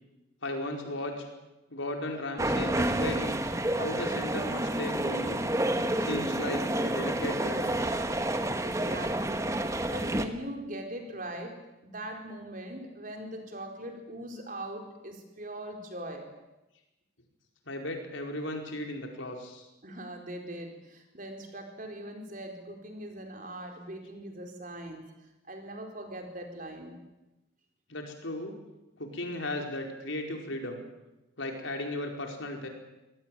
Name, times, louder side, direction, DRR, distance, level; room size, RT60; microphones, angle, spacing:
voice 1, 0.4-1.3 1.7-3.4 3.8-5.4 6.0-8.0 17.7-19.7 27.9-28.5 29.0-30.8 31.4-32.7, left 1 dB, 80° left, 3 dB, 4.7 m, -36 dB
sound 1, 2.4-10.3, right 1 dB, 15° right, 1.3 m, -29 dB
voice 2, 8.6-9.6 9.9-11.5 11.8-16.3 19.8-25.0 25.5-27.0, right 1 dB, 45° right, 3 dB, 4.5 m, -41 dB
25.5 x 18.0 x 9.2 m, 1.0 s
head